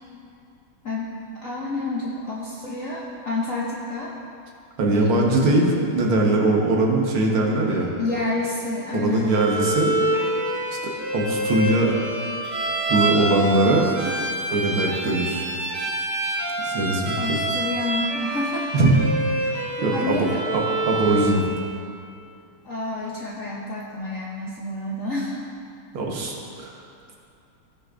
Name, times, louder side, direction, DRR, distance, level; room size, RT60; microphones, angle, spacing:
voice 1, 0.8-4.1 4.9-5.1 7.7-9.3 13.6-14.1 17.2-18.7 19.5-20.7 22.6-25.3, left 2 dB, 60° left, -5 dB, 0.9 m, -29 dB
voice 2, 4.8-7.9 8.9-9.9 11.1-11.9 12.9-13.8 14.5-15.5 16.6-17.4 18.7-19.1 19.8-20.3 20.5-21.4 25.9-26.7, right 2 dB, 75° right, -1 dB, 2.0 m, -21 dB
Bowed string instrument, 9.3-21.4, right 2 dB, 50° right, 2.7 m, -26 dB
16.5 x 6.4 x 2.5 m, 2.6 s
omnidirectional pair, 2.4 m